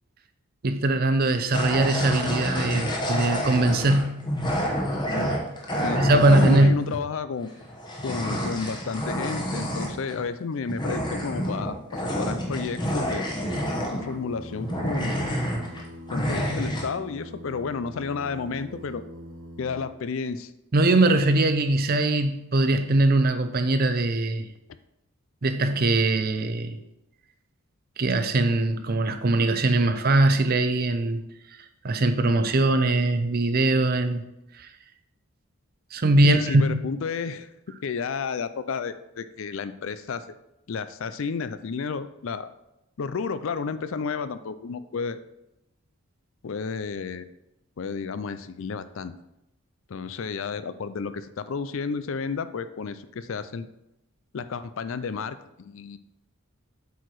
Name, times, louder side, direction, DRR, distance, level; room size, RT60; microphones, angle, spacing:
voice 1, 0.6-4.3 6.0-6.9 20.7-24.5 25.4-26.8 28.0-31.2 31.8-34.2 34.6-34.7 35.9-36.6, right 2 dB, 40° right, 9 dB, 0.6 m, -21 dB
sound 1, 1.5-7.0 7.6-10.2 10.7-14.3 14.6-15.8 16.1-16.8, equal, 20° left, 1.1 m, -28 dB
voice 2, 5.8-7.5 8.0-13.3 13.9-15.2 16.1-19.0 19.6-20.5 36.2-37.5 37.8-40.2 40.7-42.5 43.0-45.2 46.4-47.3 47.8-49.1 49.9-53.7 54.3-56.0, left 5 dB, 60° left, 13 dB, 0.4 m, -31 dB
Singing, 12.0-19.9, left 1 dB, 60° right, 0.9 m, -43 dB
8.1 x 4.6 x 4.7 m, 0.89 s
head